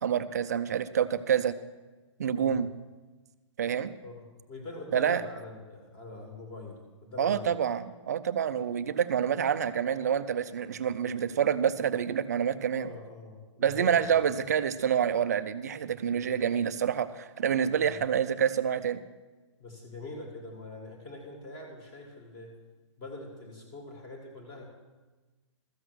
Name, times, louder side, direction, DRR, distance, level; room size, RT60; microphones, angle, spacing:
voice 1, 0.0-1.5 2.2-2.7 3.6-3.9 4.9-5.2 7.2-12.9 13.6-19.0, right 8 dB, 35° right, 12 dB, 0.4 m, -27 dB
voice 2, 2.3-2.6 4.0-7.5 12.7-14.1 17.7-18.0 19.6-22.5 23.0-24.7, left 2 dB, 20° left, 2 dB, 1.8 m, -43 dB
13.5 x 8.0 x 6.2 m, 1.2 s
hypercardioid pair, 175°, 16 cm